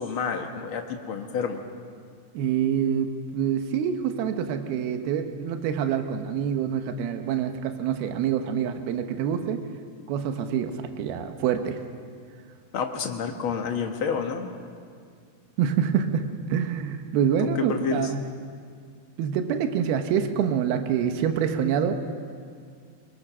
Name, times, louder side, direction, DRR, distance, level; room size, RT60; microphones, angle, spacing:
voice 1, 0.0-1.6 12.7-14.5 17.4-18.1, left 6 dB, 75° left, 4 dB, 1.2 m, -29 dB
voice 2, 2.3-9.6 10.1-11.8 15.6-18.2 19.2-21.9, right 8 dB, 80° right, 7 dB, 3.0 m, -26 dB
24.5 x 23.0 x 6.2 m, 2.2 s
omnidirectional pair, 4.4 m